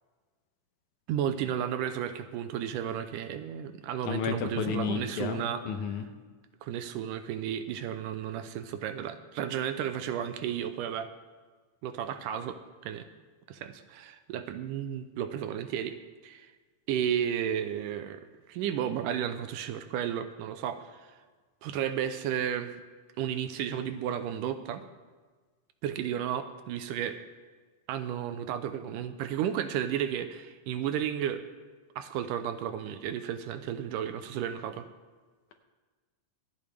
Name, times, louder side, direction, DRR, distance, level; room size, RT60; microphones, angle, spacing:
voice 1, 1.1-5.6 6.6-11.1 11.8-13.1 13.5-16.0 16.2-16.5 16.9-21.2 21.6-22.7 23.2-24.8 25.8-27.2 27.9-31.4 32.0-34.9, right 9 dB, 80° right, 10 dB, 2.2 m, -33 dB
voice 2, 4.1-6.1, left 6 dB, 70° left, 6 dB, 2.2 m, -32 dB
25.5 x 8.7 x 3.4 m, 1.4 s
omnidirectional pair, 3.9 m